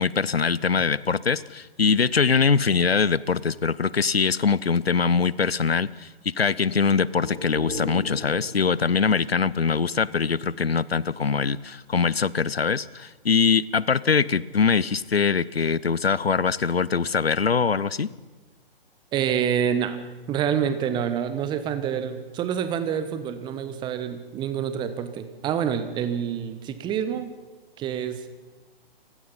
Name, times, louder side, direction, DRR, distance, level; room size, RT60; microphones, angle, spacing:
voice 1, 0.0-6.1 6.4-18.1, left 5 dB, 80° left, 20 dB, 0.8 m, -23 dB
sound 1, 6.9-10.6 11.0-11.1, left 1 dB, 75° right, 7.0 m, -38 dB
voice 2, 19.1-20.0 20.3-27.3 27.8-28.2, right 8 dB, 15° right, 11 dB, 1.2 m, -27 dB
28.5 x 16.5 x 5.6 m, 1.2 s
figure-of-eight pair, 130°, 30 cm